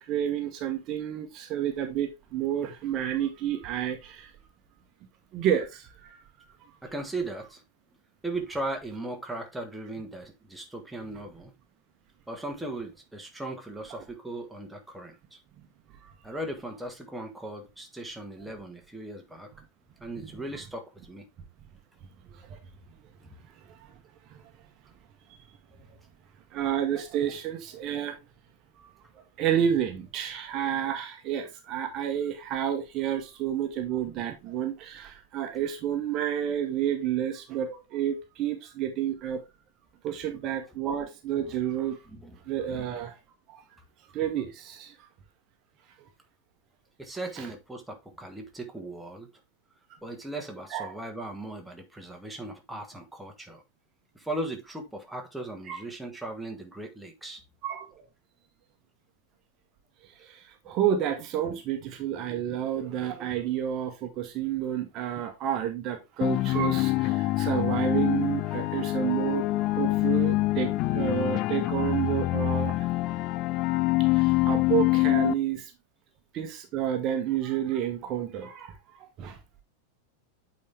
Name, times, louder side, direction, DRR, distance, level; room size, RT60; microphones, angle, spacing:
voice 1, 0.0-4.3 5.3-6.2 15.6-15.7 16.0-16.1 20.2-20.3 22.3-22.4 23.7-23.9 24.3-24.4 26.5-28.1 28.8-28.9 29.4-39.4 40.0-42.0 42.5-43.1 43.5-43.6 44.1-44.9 47.4-47.5 50.7-50.9 55.7-55.8 57.6-58.0 60.2-72.9 74.0-75.7 76.3-79.4, right 10 dB, 35° right, 1.1 m, -30 dB
voice 2, 6.8-7.6 8.2-11.5 12.3-15.4 16.2-19.5 20.0-21.2 40.3-40.4 41.4-41.6 42.1-42.4 42.7-42.8 47.0-49.3 50.0-53.6 54.1-57.4, right 2 dB, 5° right, 1.4 m, -38 dB
sound 1, 66.2-75.3, left 18 dB, 40° left, 0.4 m, -25 dB
8.5 x 4.2 x 3.4 m
figure-of-eight pair, 90°, 0 cm